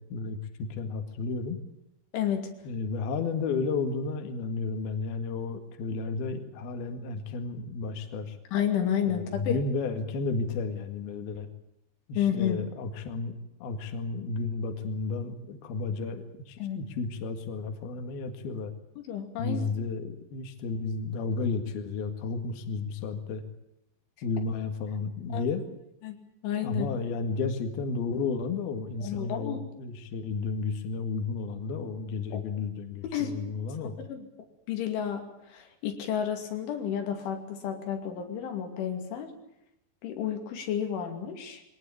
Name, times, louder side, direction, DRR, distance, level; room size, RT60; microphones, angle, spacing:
voice 1, 0.0-1.6 2.7-8.4 9.0-11.5 12.1-13.3 13.6-18.7 19.4-23.4 24.2-25.6 26.6-34.0, left 4 dB, 60° left, 6 dB, 3.6 m, -32 dB
voice 2, 8.5-9.6 12.2-12.6 16.6-16.8 19.0-19.7 25.3-25.5 26.0-26.2 26.4-26.9 29.0-29.6 32.3-32.4 33.1-33.3 34.1-34.2 34.7-35.2 35.5-39.3 40.0-41.6, left 9 dB, 85° left, 4 dB, 5.2 m, -31 dB
23.0 x 19.0 x 8.6 m, 0.84 s
omnidirectional pair, 5.3 m